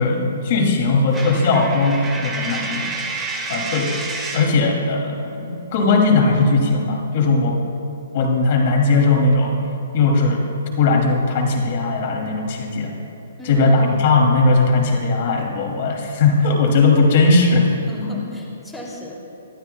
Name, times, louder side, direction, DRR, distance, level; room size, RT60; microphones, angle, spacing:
voice 1, 0.0-2.9 3.5-3.9 4.3-7.6 8.1-9.6 9.9-10.5 10.8-12.9 13.5-17.6 18.0-18.1, left 3 dB, 50° left, 1 dB, 2.8 m, -18 dB
Coin (dropping), 1.1-4.6, right 3 dB, 10° right, 1.5 m, -29 dB
voice 2, 13.4-14.0 17.5-19.4, equal, 5° left, -4 dB, 2.9 m, -34 dB
26.0 x 12.5 x 2.3 m, 2.9 s
hypercardioid pair, 135°, 0 cm